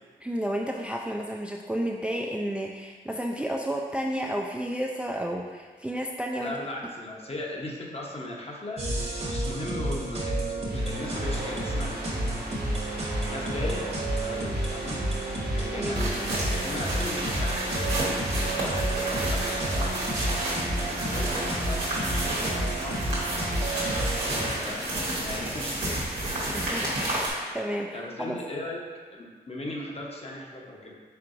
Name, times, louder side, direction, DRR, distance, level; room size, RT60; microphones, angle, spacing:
voice 1, 0.2-6.5 15.7-16.1 26.5-28.4, equal, 5° right, 0 dB, 0.3 m, -32 dB
voice 2, 6.4-12.9 13.3-15.1 15.5-23.0 23.6-24.1 24.4-24.9 25.2-26.0 27.9-28.8 29.1-30.9, left 1 dB, 35° left, -2 dB, 0.9 m, -38 dB
sound 1, 8.8-24.5, right 1 dB, 40° right, 1.0 m, -30 dB
sound 2, 10.7-24.7, right 1 dB, 65° right, 1.2 m, -40 dB
sound 3, 15.9-27.3, right 1 dB, 90° right, 1.1 m, -31 dB
4.5 x 3.6 x 2.5 m, 1.5 s
supercardioid pair, 45°, 17 cm